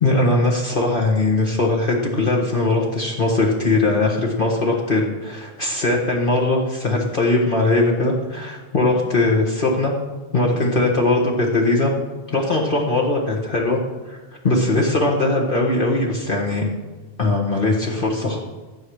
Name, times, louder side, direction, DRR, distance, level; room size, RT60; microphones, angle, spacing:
voice 1, 0.0-10.0 10.3-11.9 12.3-13.8 14.1-14.2 14.4-16.7 17.2-18.4, left 2 dB, 45° left, -2 dB, 1.8 m, -20 dB
14.0 x 7.9 x 6.4 m, 1.3 s
omnidirectional pair, 1.2 m